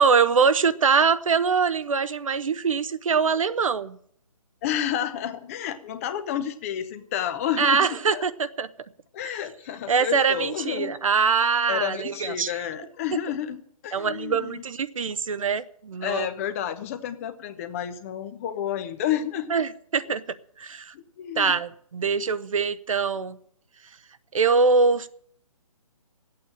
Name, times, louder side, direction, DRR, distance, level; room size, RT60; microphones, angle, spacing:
voice 1, 0.0-4.0 7.6-8.7 9.9-12.6 13.9-16.3 19.5-20.2 20.6-20.9 21.4-23.4 24.3-25.1, right 5 dB, 60° right, 14 dB, 0.8 m, -23 dB
voice 2, 4.6-8.2 9.1-10.9 11.7-14.6 16.0-19.6 20.9-21.5, left 10 dB, 25° left, 10 dB, 0.9 m, -30 dB
13.0 x 8.7 x 8.8 m, 0.63 s
figure-of-eight pair, 150°, 19 cm